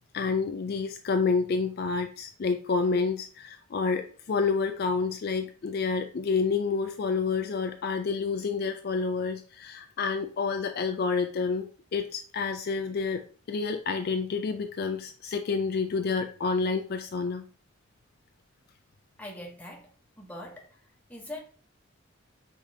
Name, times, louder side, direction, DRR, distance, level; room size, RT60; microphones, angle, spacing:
voice 1, 0.1-13.2 13.5-17.4, left 4 dB, 50° left, 0.3 m, -29 dB
voice 2, 19.2-19.9 20.2-20.7 21.1-21.4, left 1 dB, 5° left, 1.0 m, -41 dB
4.9 x 3.6 x 2.7 m
head